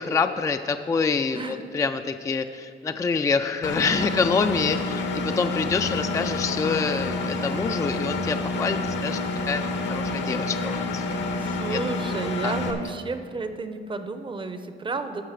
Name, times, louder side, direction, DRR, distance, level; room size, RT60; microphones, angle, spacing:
voice 1, 0.0-9.2 9.5-11.1 11.7-11.8 12.4-12.5, left 5 dB, 15° left, 8 dB, 0.3 m, -26 dB
Engine, 3.6-12.7, left 2 dB, 65° left, 1.0 m, -28 dB
voice 2, 11.4-15.2, right 3 dB, 25° right, 9 dB, 0.7 m, -32 dB
14.0 x 5.5 x 5.0 m, 2.4 s
cardioid pair, 90°, 20 cm